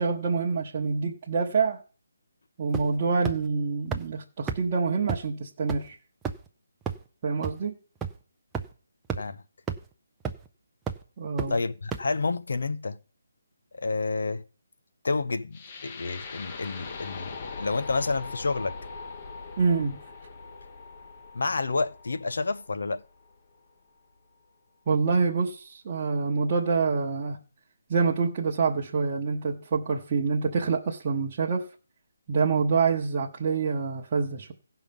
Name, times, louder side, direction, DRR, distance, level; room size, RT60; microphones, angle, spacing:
voice 1, 0.0-1.8 2.6-5.9 7.2-7.7 11.2-11.6 19.6-20.0 24.9-27.4 27.9-31.7 32.3-34.5, right 5 dB, 25° right, 1.0 m, -26 dB
sound 1, 2.7-3.0 3.2-3.3 3.9-4.0 4.5-4.6 5.1-5.2 5.7-5.8 6.2-6.5 6.8-6.9 7.4-7.5 8.0-8.1 8.5-8.6 9.1-9.2 9.7-9.8 10.2-10.5 10.9-11.0 11.4-11.5 11.9-12.0, right 6 dB, 5° right, 0.5 m, -30 dB
voice 2, 11.5-13.0 13.7-14.4 15.0-18.8 21.3-23.0, left 3 dB, 70° left, 0.8 m, -29 dB
sound 2, 15.5-23.6, left 4 dB, 30° left, 0.8 m, -41 dB
15.5 x 5.6 x 5.3 m
hypercardioid pair, 170°, 0 cm